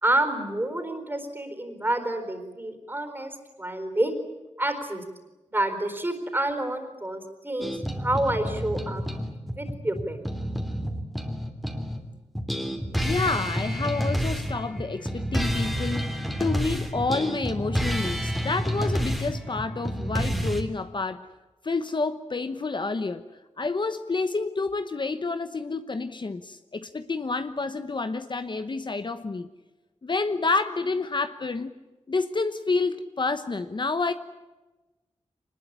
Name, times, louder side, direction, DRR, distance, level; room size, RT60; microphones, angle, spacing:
voice 1, 0.0-4.1 4.6-5.1 5.5-7.7 8.0-9.0 9.6-10.2, right 1 dB, 20° right, 7 dB, 4.3 m, -28 dB
sound 1, 7.6-12.0 12.3-20.6, equal, ahead, 3.1 m, -29 dB
voice 2, 13.0-21.3 21.6-23.3 23.6-29.5 30.0-31.7 32.1-34.1, left 3 dB, 40° left, 10 dB, 1.0 m, -29 dB
25.5 x 20.5 x 10.0 m, 1.1 s
wide cardioid pair, 120°, 12 cm